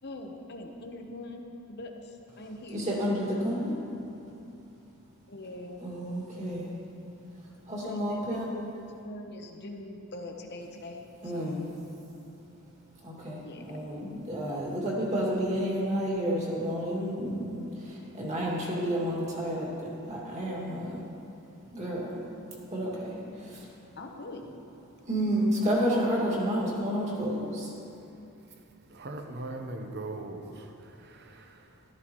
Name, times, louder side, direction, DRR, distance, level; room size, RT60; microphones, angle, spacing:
voice 1, 0.0-2.8 5.3-5.8 7.8-11.6 13.4-14.0 24.0-24.5, left 2 dB, 50° left, 3 dB, 1.0 m, -43 dB
voice 2, 2.7-3.8 5.8-6.8 7.4-8.5 11.2-11.8 13.0-21.1 21.7-23.7 25.1-27.7, equal, 30° right, -4 dB, 2.2 m, -31 dB
voice 3, 28.9-31.8, right 2 dB, 50° right, 4 dB, 0.9 m, -40 dB
13.5 x 12.5 x 3.1 m, 2.8 s
head